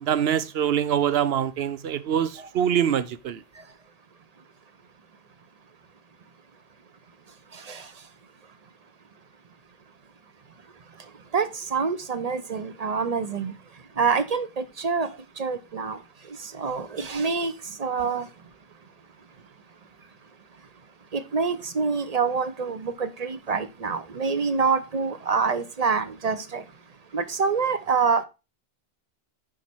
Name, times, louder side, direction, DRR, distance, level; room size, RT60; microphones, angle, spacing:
voice 1, 0.0-3.4, right 9 dB, 75° right, 0.9 m, -24 dB
voice 2, 7.5-7.9 11.3-13.5 14.0-15.1 15.4-16.0 16.3-18.3 21.1-26.6 27.1-28.3, right 5 dB, 45° right, 0.7 m, -26 dB
9.9 x 4.3 x 4.4 m
omnidirectional pair, 1.0 m